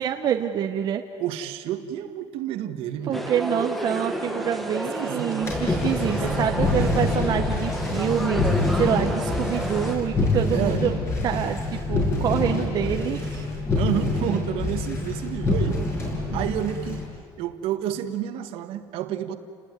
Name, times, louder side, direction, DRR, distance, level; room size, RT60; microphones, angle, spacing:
voice 1, 0.0-1.0 3.1-13.5 16.3-16.5, right 9 dB, 40° right, 4 dB, 1.1 m, -26 dB
voice 2, 1.2-3.2 5.0-5.4 6.1-6.4 6.7-7.0 10.5-10.8 13.8-15.8 16.3-17.1 17.4-19.4, right 11 dB, 60° right, 9 dB, 1.8 m, -30 dB
sound 1, 3.1-10.0, equal, ahead, 1.6 m, -31 dB
sound 2, 5.4-17.0, left 2 dB, 25° left, 7.1 m, -26 dB
30.0 x 20.0 x 9.7 m, 2.2 s
cardioid pair, 165°, 11 cm